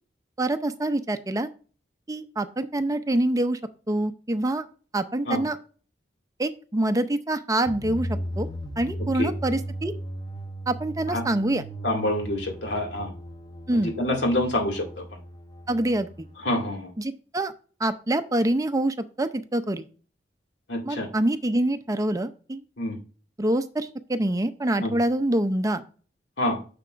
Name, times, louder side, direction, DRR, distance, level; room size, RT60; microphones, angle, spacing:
voice 1, 0.4-1.5 2.1-3.6 3.9-4.7 4.9-5.6 6.4-8.5 8.8-9.9 10.7-11.6 13.7-13.9 15.7-16.1 17.0-17.5 17.8-19.8 20.8-22.6 23.4-25.8, right 1 dB, 20° right, 10 dB, 0.5 m, -25 dB
sound 1, 7.7-16.5, equal, 25° left, 0.9 m, -36 dB
voice 2, 11.8-13.1 13.7-15.0 16.4-16.9 20.7-21.1 22.8-23.0 24.8-24.9 26.4-26.6, left 1 dB, 80° left, 2 dB, 2.1 m, -26 dB
9.9 x 6.7 x 2.5 m, 0.38 s
head